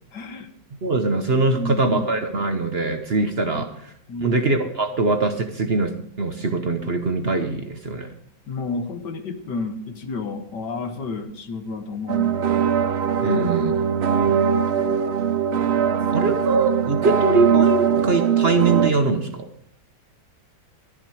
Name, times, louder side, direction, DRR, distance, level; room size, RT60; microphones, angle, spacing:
voice 1, 0.1-0.5 1.5-2.1 3.5-3.6 4.1-4.4 8.5-12.5 13.2-13.4 14.2-15.0, left 3 dB, 75° left, 7 dB, 1.9 m, -31 dB
voice 2, 0.8-3.9 4.2-5.9 6.2-8.1 13.2-13.7 16.1-19.5, right 3 dB, 40° right, 7 dB, 1.1 m, -22 dB
sound 1, 12.1-18.9, right 7 dB, 60° right, 0.7 m, -21 dB
13.5 x 11.0 x 4.8 m, 0.67 s
omnidirectional pair, 1.8 m